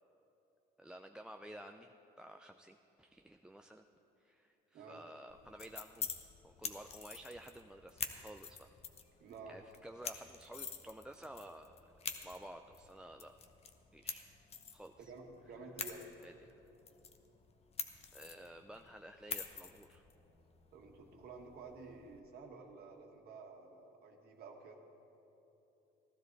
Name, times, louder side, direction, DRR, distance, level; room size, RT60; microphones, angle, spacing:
voice 1, 0.8-3.9 4.2-6.1 6.4-8.7 9.5-11.9 12.2-13.4 13.9-14.2 14.7-15.1 16.2-16.7 18.1-20.0, right 1 dB, 5° right, 6 dB, 0.4 m, -52 dB
sound 1, 5.3-22.2, left 6 dB, 35° left, 0.9 m, -48 dB
voice 2, 9.2-9.6 15.0-16.0 20.7-24.8, right 4 dB, 65° right, 2 dB, 1.6 m, -52 dB
15.0 x 12.5 x 4.0 m, 3.0 s
cardioid pair, 110°, 17 cm